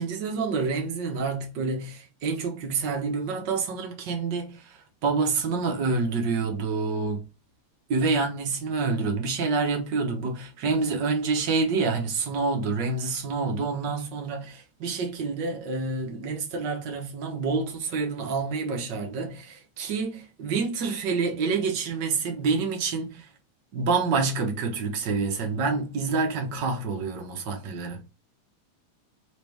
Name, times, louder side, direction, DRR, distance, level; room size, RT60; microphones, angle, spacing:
voice 1, 0.0-7.2 7.9-23.3 23.7-28.0, right 4 dB, 60° right, 1.2 m, -27 dB
5.0 x 3.0 x 3.4 m
omnidirectional pair, 3.3 m